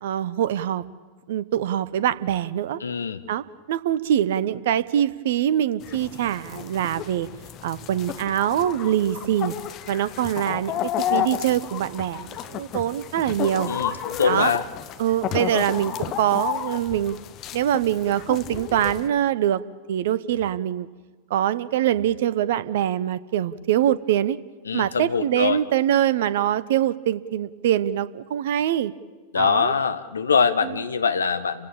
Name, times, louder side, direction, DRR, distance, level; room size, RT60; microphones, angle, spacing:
voice 1, 0.0-0.8 1.3-2.8 3.3-7.3 7.6-9.5 9.9-13.7 14.2-14.5 15.0-17.2 17.5-19.6 19.9-20.9 21.3-24.4 24.7-28.9 29.3-29.7 30.6-30.8, right 11 dB, 55° right, 17 dB, 0.9 m, -24 dB
voice 2, 2.8-3.2 13.7-14.6 24.7-25.6 29.3-31.7, left 6 dB, 70° left, 10 dB, 1.3 m, -23 dB
sound 1, 5.8-19.1, left 11 dB, 35° left, 1.5 m, -32 dB
30.0 x 16.5 x 8.8 m, 1.4 s
figure-of-eight pair, 90°, 0 cm